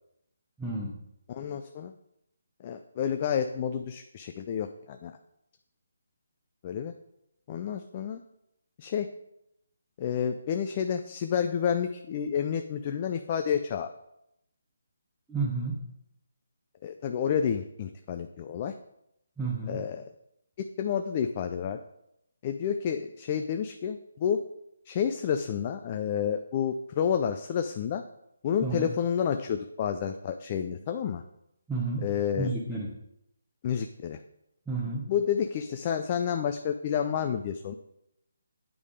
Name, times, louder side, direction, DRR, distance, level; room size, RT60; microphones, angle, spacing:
voice 1, 0.6-1.0 15.3-15.8 19.4-19.8 28.6-28.9 31.7-32.1 32.4-32.9 34.7-35.0, right 3 dB, 5° right, -6 dB, 0.8 m, -31 dB
voice 2, 1.3-1.9 2.6-5.2 6.6-6.9 7.5-8.2 8.8-9.1 10.0-13.9 16.8-18.7 19.7-20.0 20.6-21.8 22.4-24.4 24.9-28.0 28.4-31.2 32.0-32.5 33.6-34.2 35.1-37.7, left 8 dB, 30° left, 7 dB, 0.3 m, -30 dB
8.8 x 3.5 x 4.9 m, 0.80 s
hypercardioid pair, 160°, 0 cm